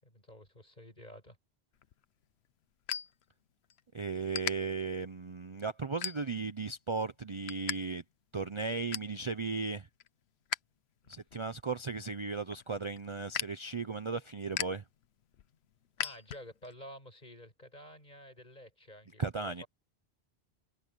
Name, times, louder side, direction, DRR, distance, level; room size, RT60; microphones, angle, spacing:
voice 1, 0.0-1.4 11.0-11.2 16.0-19.7, equal, 45° left, 8.3 m, -51 dB
sound 1, 1.7-3.8 4.1-4.5 5.1-5.3 5.9-6.6 7.0-7.8 8.1-8.2 8.5-9.2 9.6-10.6 11.0-16.7, left 10 dB, 80° left, 1.0 m, -40 dB
voice 2, 3.9-8.0 8.3-9.9 11.1-14.8 19.2-19.6, right 4 dB, 35° right, 0.7 m, -36 dB
omnidirectional pair, 1.1 m